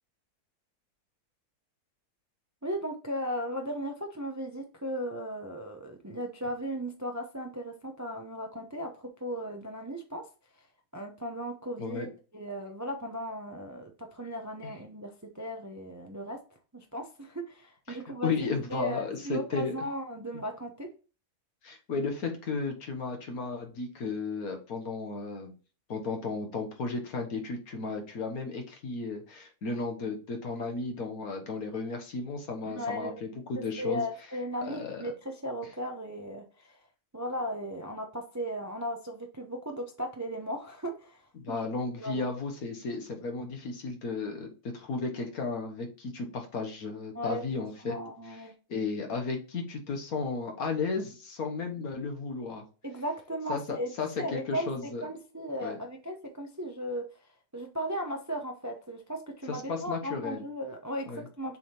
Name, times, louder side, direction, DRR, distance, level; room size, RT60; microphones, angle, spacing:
voice 1, 2.6-10.2 10.9-12.1 12.3-16.4 16.7-20.9 32.6-33.2 33.8-36.8 37.1-41.6 42.0-42.3 47.1-47.4 47.8-48.5 52.8-53.9 54.2-57.1 57.5-61.1 61.4-61.6, equal, 20° right, 3 dB, 0.5 m, -36 dB
voice 2, 11.8-12.1 14.6-14.7 17.9-19.7 21.6-25.5 25.9-34.0 34.6-35.0 41.3-48.0 48.3-48.4 48.7-52.6 53.5-55.0 55.6-55.8 59.5-60.4 61.1-61.3, left 4 dB, 70° left, 4 dB, 1.7 m, -34 dB
6.9 x 3.6 x 4.3 m, 0.35 s
omnidirectional pair, 1.6 m